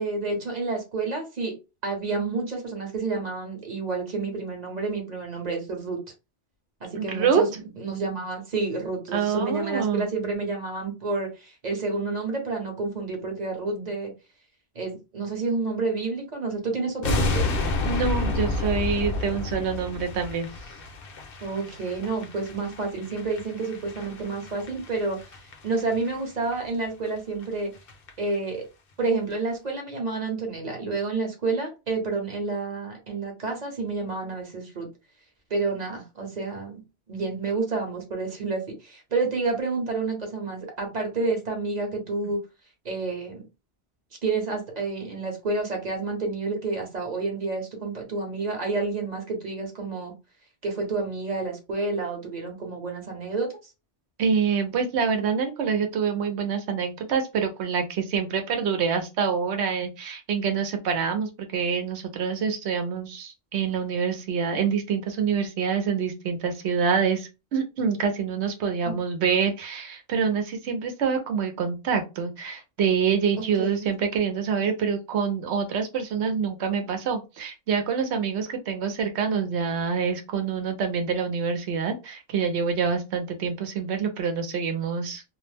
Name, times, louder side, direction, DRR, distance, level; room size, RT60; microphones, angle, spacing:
voice 1, 0.0-1.6 1.8-6.0 6.8-7.5 7.8-14.1 14.7-17.5 21.4-25.2 25.6-27.7 28.2-28.7 29.0-34.9 35.5-36.8 37.1-42.4 42.8-43.4 44.2-50.1 50.6-53.6 68.8-68.9 73.4-73.9, right 3 dB, 40° right, 0.9 m, -29 dB
voice 2, 7.0-7.4 9.1-10.1 17.9-20.5 54.2-85.2, right 6 dB, 80° right, 0.9 m, -26 dB
sound 1, 17.0-26.2 26.5-26.7 27.1-27.2 27.4-27.5 27.8-28.1 28.3-28.4, left 2 dB, 65° left, 0.8 m, -30 dB
2.4 x 2.0 x 3.2 m
omnidirectional pair, 1.1 m